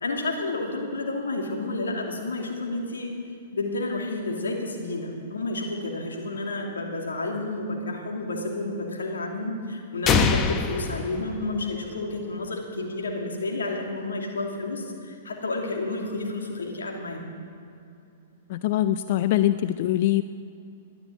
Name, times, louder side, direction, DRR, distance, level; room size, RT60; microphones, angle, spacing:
voice 1, 0.0-3.2 3.5-17.3, left 2 dB, 80° left, 0 dB, 2.6 m, -31 dB
sound 1, 10.1-12.0, left 5 dB, 25° left, 1.1 m, -24 dB
voice 2, 18.5-20.2, left 13 dB, 55° left, 12 dB, 0.4 m, -23 dB
13.0 x 10.0 x 8.4 m, 2.7 s
hypercardioid pair, 115°, 0 cm